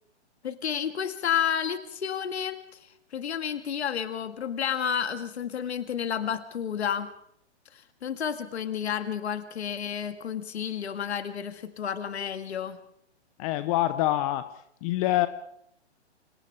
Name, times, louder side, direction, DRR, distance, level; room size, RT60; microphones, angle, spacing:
voice 1, 0.4-7.1 7.7-12.8, left 8 dB, 65° left, 10 dB, 1.9 m, -31 dB
voice 2, 13.4-14.5 14.8-15.3, left 15 dB, 30° left, 13 dB, 0.9 m, -25 dB
28.5 x 26.5 x 3.5 m, 0.69 s
hypercardioid pair, 130°, 35 cm